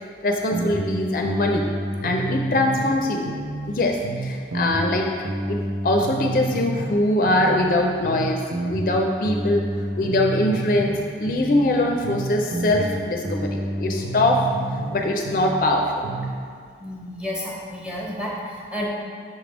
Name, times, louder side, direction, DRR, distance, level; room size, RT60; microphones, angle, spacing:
voice 1, 0.2-1.6 2.0-3.3 3.7-8.4 8.7-9.7 10.0-14.4 14.9-16.1, left 1 dB, 50° left, 1 dB, 0.4 m, -22 dB
sound 1, 0.5-3.0 3.2-7.0 7.2-11.0 11.2-15.0 15.2-16.3, right 2 dB, 90° right, 0.7 m, -29 dB
voice 2, 16.8-18.9, left 1 dB, 5° right, -5 dB, 1.0 m, -31 dB
6.4 x 3.3 x 5.1 m, 2.1 s
head